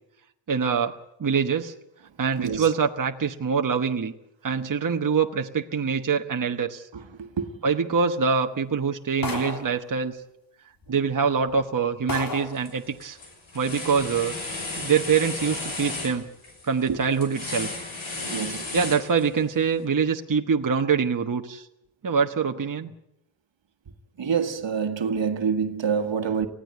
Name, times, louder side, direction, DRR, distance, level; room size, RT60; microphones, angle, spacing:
voice 1, 0.5-1.7 2.2-4.1 4.4-6.9 7.6-10.2 10.9-13.2 13.5-14.3 14.8-16.3 16.6-17.7 18.7-21.7 22.0-22.9, right 6 dB, 40° right, 1.1 m, -24 dB
voice 2, 7.2-7.5 16.9-17.0 18.3-18.6 24.2-26.5, right 6 dB, 70° right, 1.6 m, -26 dB
sound 1, 9.2-9.8 10.8-10.9 11.5-11.6 12.1-12.6, left 2 dB, 45° left, 3.1 m, -31 dB
sound 2, 12.4-12.7 13.0-19.5, left 3 dB, 80° left, 6.2 m, -34 dB
19.5 x 15.5 x 9.2 m
wide cardioid pair, 80°, 47 cm